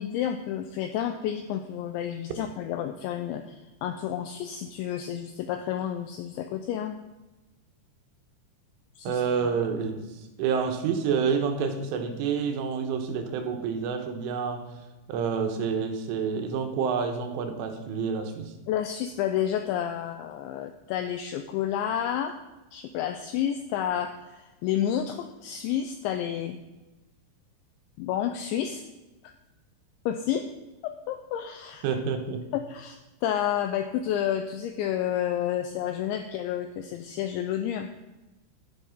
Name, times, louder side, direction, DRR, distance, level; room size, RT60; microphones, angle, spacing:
voice 1, 0.0-3.6 3.8-7.0 9.0-9.2 18.7-22.3 22.7-26.6 28.0-28.8 29.2-29.3 30.1-30.5 30.8-31.9 32.5-37.9, left 10 dB, 85° left, 7 dB, 2.6 m, -30 dB
voice 2, 9.1-14.6 15.1-18.5 31.8-32.4, right 6 dB, 75° right, 5 dB, 3.5 m, -28 dB
11.5 x 10.5 x 5.4 m, 1.1 s
omnidirectional pair, 6.0 m